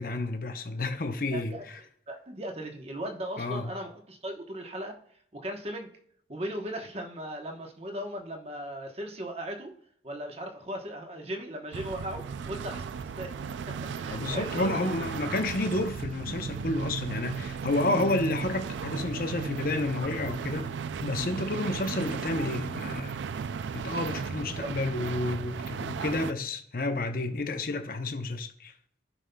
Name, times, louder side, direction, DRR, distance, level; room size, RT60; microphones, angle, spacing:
voice 1, 0.0-1.8 3.4-3.7 14.1-20.7 21.0-23.2 23.7-28.7, left 2 dB, 50° left, 0.8 m, -30 dB
voice 2, 1.3-1.6 2.1-5.0 5.3-5.9 6.3-9.7 10.0-13.3 13.7-14.9 24.4-24.7, right 1 dB, 35° right, 1.1 m, -38 dB
sound 1, 11.7-26.3, right 6 dB, 90° right, 0.4 m, -35 dB
15.5 x 5.4 x 2.3 m
head